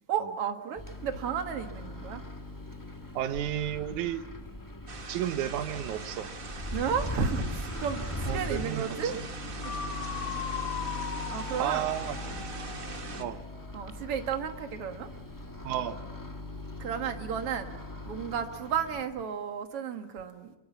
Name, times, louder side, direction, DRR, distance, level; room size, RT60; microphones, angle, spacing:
voice 1, 0.1-2.2 6.7-9.2 9.6-9.7 11.2-11.9 13.7-15.1 16.8-17.7 18.0-20.5, right 7 dB, 50° right, 6 dB, 2.3 m, -33 dB
Microwave oven, 0.8-19.0, left 1 dB, 20° left, 0.5 m, -40 dB
voice 2, 3.1-4.2 5.1-6.3 8.3-9.1 11.6-12.2 13.2-13.4 15.6-16.0, right 11 dB, 70° right, 10 dB, 2.4 m, -32 dB
sound 1, 4.9-13.2, right 4 dB, 35° right, 1.6 m, -42 dB
sound 2, 9.6-13.5, left 8 dB, 55° left, 2.4 m, -38 dB
25.0 x 23.0 x 7.2 m, 1.0 s
omnidirectional pair, 3.7 m